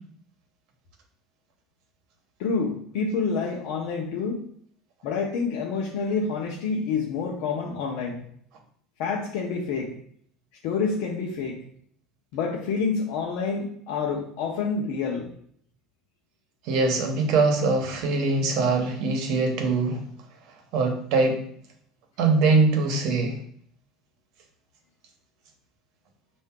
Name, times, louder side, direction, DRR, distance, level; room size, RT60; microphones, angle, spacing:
voice 1, 2.4-4.4 5.0-8.2 9.0-9.9 10.6-11.6 12.3-15.3, left 5 dB, 65° left, -2 dB, 0.7 m, -28 dB
voice 2, 16.7-20.0 20.7-21.4 22.2-23.4, right 3 dB, 60° right, 3 dB, 0.9 m, -22 dB
5.5 x 2.6 x 3.6 m, 0.62 s
cardioid pair, 155°, 0 cm